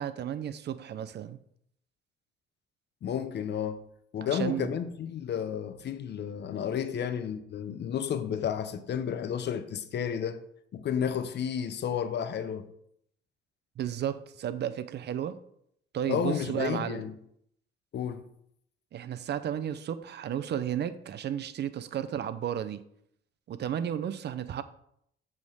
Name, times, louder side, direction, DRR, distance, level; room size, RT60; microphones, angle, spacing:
voice 1, 0.0-1.4 4.3-4.7 13.8-15.4 15.9-17.0 18.9-22.8 23.5-24.6, right 10 dB, 60° right, 0.6 m, -33 dB
voice 2, 3.0-3.8 4.1-10.4 10.7-12.7 16.1-17.1 17.9-18.3, left 8 dB, 60° left, 0.8 m, -32 dB
7.5 x 3.6 x 6.3 m
cardioid pair, 90°, 20 cm